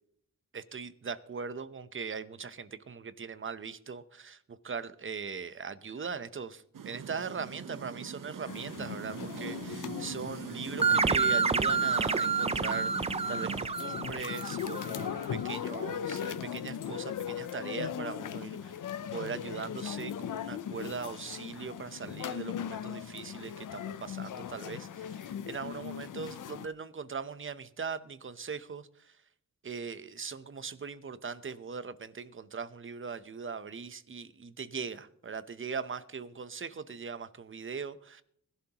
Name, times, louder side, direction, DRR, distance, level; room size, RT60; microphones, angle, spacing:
voice 1, 0.5-29.2 29.6-38.2, right 5 dB, 40° right, 0.8 m, -40 dB
sound 1, 6.7-13.6, right 7 dB, 85° right, 1.0 m, -42 dB
sound 2, 8.5-26.7, left 9 dB, 75° left, 0.7 m, -39 dB
sound 3, 10.8-15.1, right 5 dB, 20° right, 0.4 m, -29 dB
21.0 x 11.5 x 3.0 m
wide cardioid pair, 110°, 31 cm